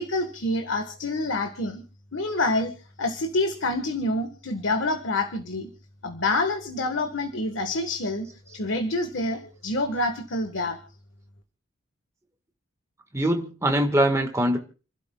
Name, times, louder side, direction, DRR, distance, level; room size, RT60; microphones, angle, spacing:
voice 1, 0.0-1.8 2.1-2.7 3.0-5.7 6.0-8.3 8.5-10.8, left 2 dB, 70° left, 1.3 m, -27 dB
voice 2, 13.1-14.6, right 1 dB, 15° right, 1.4 m, -22 dB
30.0 x 12.0 x 2.3 m
head